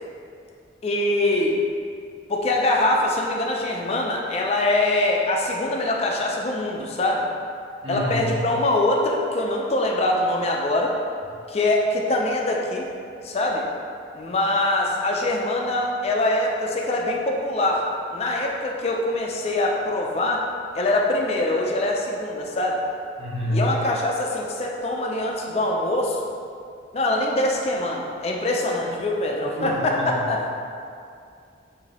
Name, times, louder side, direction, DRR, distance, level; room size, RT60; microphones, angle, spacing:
voice 1, 0.8-1.6 2.3-7.3 7.9-10.9 11.5-12.9 13.2-13.7 14.1-20.5 20.7-22.8 23.5-26.2 26.9-30.5, left 1 dB, 35° left, 0 dB, 0.4 m, -23 dB
voice 2, 7.8-8.4 23.2-23.8 29.6-30.1, equal, 30° right, -8 dB, 0.8 m, -27 dB
3.6 x 2.6 x 3.3 m, 2.4 s
head